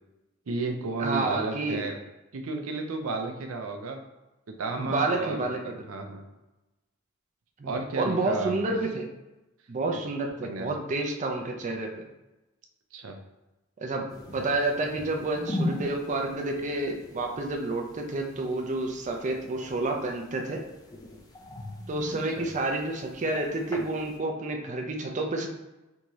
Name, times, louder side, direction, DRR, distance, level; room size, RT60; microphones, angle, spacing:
voice 1, 0.5-2.0 2.3-4.0 4.5-6.2 7.6-8.5 9.9-10.0 10.4-10.7 12.9-13.2 22.4-22.5, right 3 dB, 85° right, 5 dB, 0.5 m, -33 dB
voice 2, 1.0-1.8 4.8-5.6 7.6-9.1 9.7-11.9 13.8-20.6 21.9-25.5, right 2 dB, 35° right, 2 dB, 0.4 m, -29 dB
sound 1, 14.1-24.2, left 1 dB, 20° left, 0.4 m, -40 dB
3.4 x 2.7 x 3.0 m, 1.0 s
head